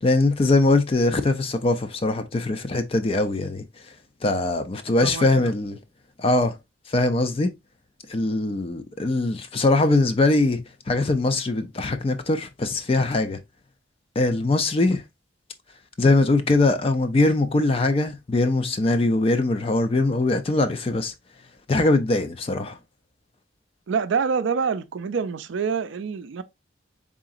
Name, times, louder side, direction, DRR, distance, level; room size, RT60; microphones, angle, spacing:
voice 1, 0.0-3.6 4.2-5.8 6.2-6.6 6.9-7.5 8.1-13.4 14.2-15.0 16.0-21.1 21.7-22.8, left 2 dB, 30° left, 0.4 m, -22 dB
voice 2, 5.0-5.5 23.9-26.4, right 6 dB, 70° right, 0.4 m, -26 dB
3.9 x 3.7 x 2.4 m
head